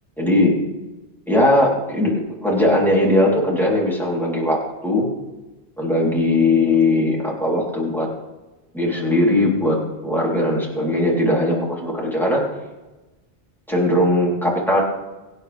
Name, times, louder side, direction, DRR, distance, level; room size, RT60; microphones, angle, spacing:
voice 1, 0.2-0.5 1.3-2.1 2.4-5.1 5.8-8.1 8.7-12.4 13.7-14.8, left 1 dB, ahead, -5 dB, 3.8 m, -19 dB
25.0 x 9.2 x 3.6 m, 1.1 s
omnidirectional pair, 1.1 m